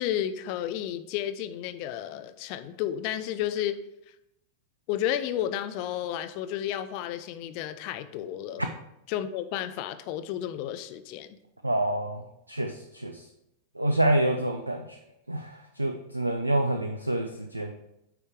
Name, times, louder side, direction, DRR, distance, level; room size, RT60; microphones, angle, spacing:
voice 1, 0.0-3.8 4.9-8.7 9.1-11.4, left 11 dB, 45° left, 10 dB, 0.5 m, -32 dB
voice 2, 11.6-12.2 12.5-13.2 13.8-15.0 15.3-17.7, right 1 dB, 85° right, 5 dB, 0.5 m, -27 dB
9.5 x 3.4 x 4.8 m, 0.85 s
figure-of-eight pair, 90°, 0 cm